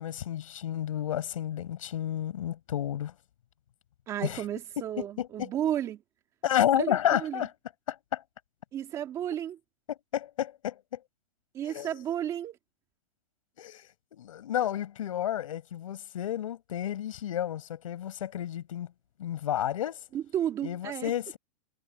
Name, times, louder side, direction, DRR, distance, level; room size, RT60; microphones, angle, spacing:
voice 1, 0.0-3.1 4.2-4.4 5.0-5.5 6.4-7.5 7.9-8.2 10.1-11.0 11.7-11.9 13.6-18.9 19.2-20.0 20.6-21.4, left 11 dB, 60° left, 6.0 m, -31 dB
voice 2, 4.1-6.0 6.8-7.4 8.7-9.6 11.5-12.6 20.1-21.1, right 10 dB, 15° right, 2.1 m, -33 dB
hypercardioid pair, 175°, 20 cm